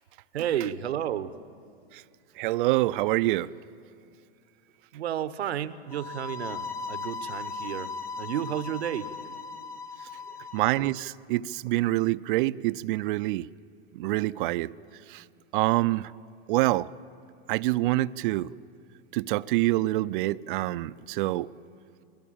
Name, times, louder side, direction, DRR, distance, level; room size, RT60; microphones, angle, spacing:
voice 1, 0.3-1.3 4.9-9.1 10.1-10.2, right 10 dB, 90° right, 1.0 m, -32 dB
voice 2, 2.4-3.5 10.5-13.5 13.9-14.7 15.1-15.2 15.5-16.1 16.5-16.9 17.5-18.5 19.1-21.5, right 18 dB, 55° right, 0.5 m, -26 dB
sound 1, 5.9-10.9, left 4 dB, 25° left, 1.7 m, -38 dB
21.5 x 16.5 x 8.8 m
hypercardioid pair, 130°, 31 cm